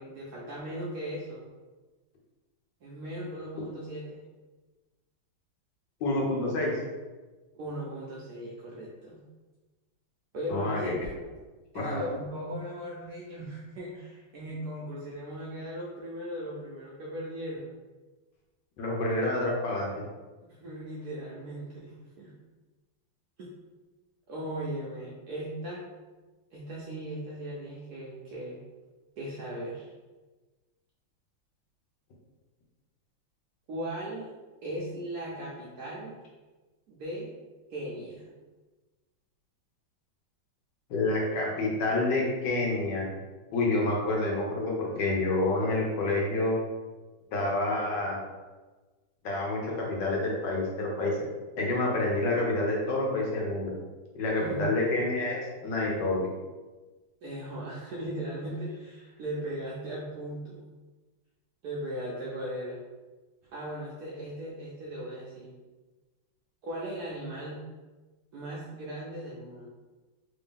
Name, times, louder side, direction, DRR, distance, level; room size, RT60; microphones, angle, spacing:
voice 1, 0.0-1.5 2.8-4.2 7.5-9.2 10.3-11.3 11.7-17.8 20.4-22.3 23.4-23.5 24.3-25.8 26.5-28.6 29.2-29.9 33.7-34.3 34.6-36.2 36.9-37.3 37.7-38.3 54.4-54.8 57.2-60.6 61.6-62.8 63.5-65.5 66.6-67.6 68.3-69.7, right 1 dB, 70° right, -5 dB, 0.9 m, -38 dB
voice 2, 6.0-6.7 10.5-10.9 11.7-12.0 18.8-19.9 40.9-43.1 43.5-46.6 47.3-48.2 49.2-51.2 51.6-53.7 54.1-56.3, left 2 dB, 65° left, -2 dB, 1.3 m, -28 dB
3.4 x 2.7 x 3.6 m, 1.3 s
omnidirectional pair, 2.2 m